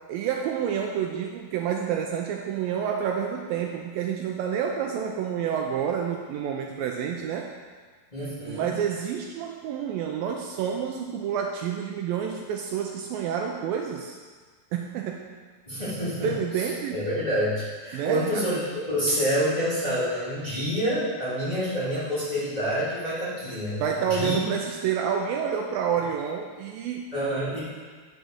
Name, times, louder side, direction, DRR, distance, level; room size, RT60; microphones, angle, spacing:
voice 1, 0.1-7.5 8.4-14.2 14.7-15.3 16.2-17.0 17.9-18.4 23.8-27.1, right 8 dB, 90° right, 2 dB, 2.1 m, -29 dB
voice 2, 8.1-8.7 15.7-16.3 16.6-16.7 16.9-18.6 18.9-24.4 27.1-27.6, equal, 10° left, -12 dB, 2.8 m, -27 dB
9.7 x 6.2 x 6.6 m, 1.5 s
omnidirectional pair, 4.8 m